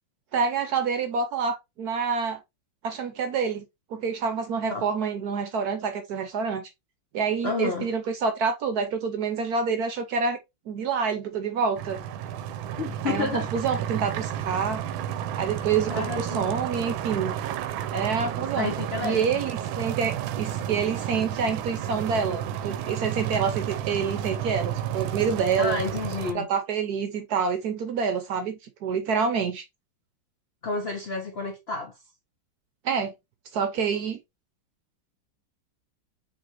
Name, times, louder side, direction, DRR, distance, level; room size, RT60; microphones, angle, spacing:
voice 1, 0.3-2.4 2.8-3.6 3.9-6.7 7.1-10.4 10.7-12.0 13.1-14.8 15.4-17.3 17.9-18.7 19.0-25.8 26.3-29.6 32.8-33.1 33.5-34.2, right 6 dB, 65° right, 1.0 m, -27 dB
voice 2, 7.4-7.9 12.8-13.5 15.8-16.5 18.6-19.4 25.6-26.5 30.6-32.0, left 4 dB, 60° left, 0.6 m, -30 dB
sound 1, 11.8-26.3, right 10 dB, 90° right, 1.4 m, -32 dB
5.2 x 3.4 x 2.9 m
omnidirectional pair, 2.1 m